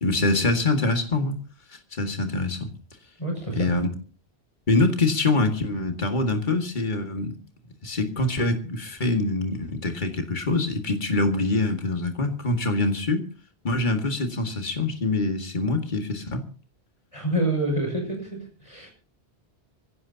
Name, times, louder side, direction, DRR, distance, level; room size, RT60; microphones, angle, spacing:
voice 1, 0.0-1.3 1.7-2.7 3.5-3.9 4.7-7.3 7.8-13.3 13.6-16.4, left 2 dB, 45° left, 4 dB, 2.1 m, -24 dB
voice 2, 3.2-3.7 17.1-18.9, right 1 dB, 30° left, 2 dB, 6.7 m, -27 dB
24.5 x 16.5 x 2.8 m, 0.39 s
omnidirectional pair, 1.1 m